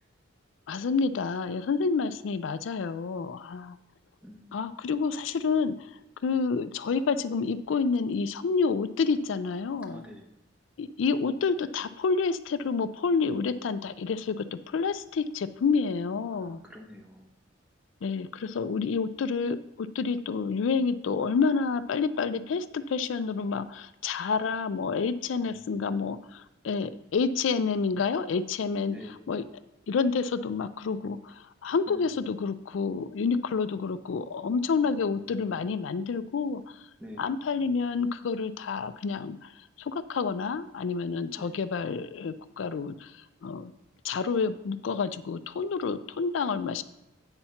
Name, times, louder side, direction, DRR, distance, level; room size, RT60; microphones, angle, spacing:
voice 1, 0.7-3.8 4.5-10.0 10.8-16.6 18.0-29.0 29.3-29.4 29.9-36.9 37.2-43.7 44.0-46.8, left 5 dB, 75° left, 12 dB, 0.4 m, -29 dB
voice 2, 4.2-4.6 9.8-10.3 16.3-17.3 25.4-26.1 28.9-29.3 31.9-32.4 34.8-35.7 37.0-37.4 41.4-41.6, left 1 dB, 5° right, 0 dB, 1.0 m, -48 dB
8.8 x 4.3 x 5.7 m, 0.96 s
head